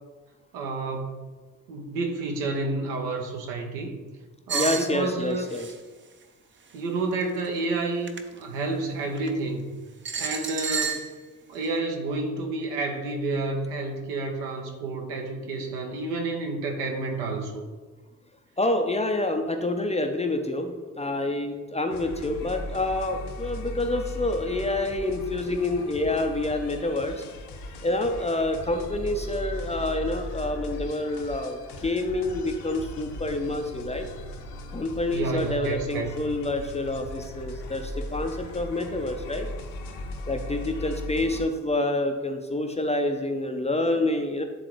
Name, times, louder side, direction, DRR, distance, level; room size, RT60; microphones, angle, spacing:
voice 1, 0.5-1.2 1.7-3.9 4.5-5.4 6.7-9.7 10.2-11.0 11.5-17.6 35.1-36.1, right 3 dB, 70° right, 2 dB, 1.0 m, -30 dB
voice 2, 4.5-5.7 18.6-27.2 27.8-34.1 34.7-39.5 40.3-44.4, left 2 dB, 15° left, 4 dB, 0.5 m, -27 dB
sound 1, 4.5-4.9 5.5-5.7 7.2-7.5 8.1-8.2 9.2-9.3 10.0-11.1, right 5 dB, 25° right, 0.6 m, -30 dB
sound 2, 21.9-41.4, left 1 dB, 55° left, 0.9 m, -38 dB
9.4 x 3.7 x 3.1 m, 1.3 s
figure-of-eight pair, 45°, 48 cm